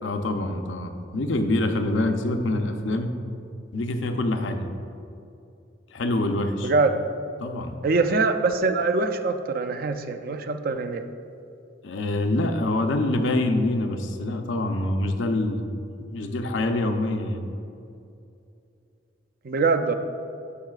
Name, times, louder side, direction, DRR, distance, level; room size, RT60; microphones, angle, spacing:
voice 1, 0.0-3.1 3.7-4.7 5.9-6.7 7.4-7.7 11.8-15.6 16.1-17.4, left 2 dB, 75° left, 5 dB, 0.6 m, -25 dB
voice 2, 6.6-7.0 7.8-11.1 19.4-19.9, right 3 dB, 50° right, 8 dB, 0.4 m, -23 dB
13.5 x 4.7 x 2.4 m, 2.6 s
head